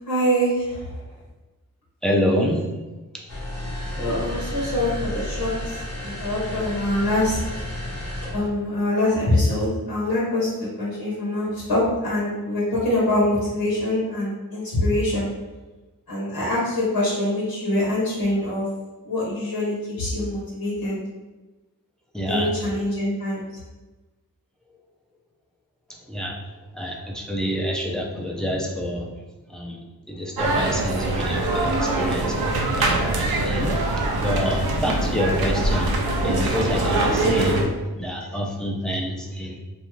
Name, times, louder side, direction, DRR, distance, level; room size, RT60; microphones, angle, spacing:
voice 1, 0.1-0.9 4.0-7.4 8.3-10.5 10.8-15.3 16.1-18.7 19.0-21.0 22.2-23.4, left 1 dB, 75° left, -6 dB, 1.0 m, -24 dB
voice 2, 2.0-2.6 3.1-3.3 22.1-22.5 25.9-26.4 26.7-29.1 29.5-29.8 30.1-32.4 32.8-33.7 34.1-35.9 36.2-37.6 38.0-39.6, equal, ahead, -1 dB, 0.5 m, -27 dB
sound 1, 3.3-8.5, left 1 dB, 45° left, 0.8 m, -32 dB
sound 2, 30.4-37.7, right 2 dB, 80° right, 0.6 m, -23 dB
2.5 x 2.4 x 3.0 m, 1.2 s
cardioid pair, 45°, 36 cm